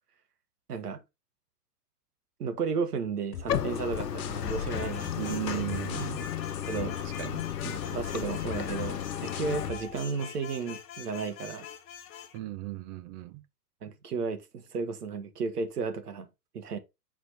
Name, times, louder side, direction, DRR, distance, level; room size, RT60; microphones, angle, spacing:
voice 1, 0.7-1.0 2.4-5.6 6.7-6.9 7.6-11.7 13.8-16.3 16.5-16.8, right 5 dB, 70° right, 1.7 m, -34 dB
sound 1, 3.3-10.1, left 9 dB, 60° left, 1.3 m, -43 dB
Bathtub (filling or washing), 3.5-9.7, left 9 dB, 80° left, 0.8 m, -34 dB
sound 2, 4.4-12.4, left 8 dB, 25° left, 1.0 m, -45 dB
voice 2, 5.2-6.3 7.0-7.5 12.3-13.4, right 16 dB, 30° right, 0.6 m, -36 dB
6.4 x 4.9 x 4.2 m
figure-of-eight pair, 105°, 48 cm